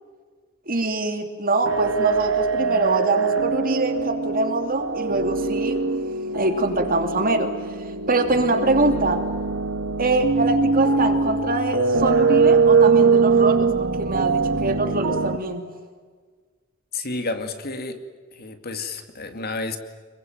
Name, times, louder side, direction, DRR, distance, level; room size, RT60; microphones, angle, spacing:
voice 1, 0.7-5.8 6.3-7.5 8.1-9.2 10.0-13.7 14.0-15.7, right 2 dB, 40° right, 6 dB, 2.8 m, -24 dB
sound 1, 1.6-15.4, right 4 dB, 60° right, 1.5 m, -22 dB
voice 2, 16.9-18.0 18.3-19.8, left 3 dB, 45° left, 7 dB, 2.2 m, -30 dB
26.5 x 22.5 x 9.3 m, 1.5 s
head